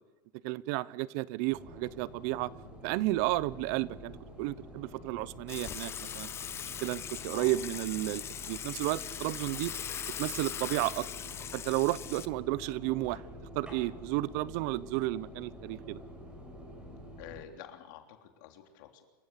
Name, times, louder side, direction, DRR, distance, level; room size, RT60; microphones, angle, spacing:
voice 1, 0.4-2.5 2.8-4.1 4.4-6.3 6.8-9.7 10.2-11.1 11.5-13.2 13.5-16.0, right 18 dB, 55° right, 20 dB, 0.7 m, -32 dB
sound 1, 1.5-17.4, left 1 dB, 10° right, 7.2 m, -48 dB
Water / Water tap faucet / Sink (filling or washing), 5.5-12.3, left 9 dB, 25° left, 0.8 m, -40 dB
voice 2, 17.2-19.0, left 10 dB, 65° left, 4 dB, 3.4 m, -48 dB
26.5 x 14.5 x 8.3 m, 1.2 s
supercardioid pair, 140°, 11 cm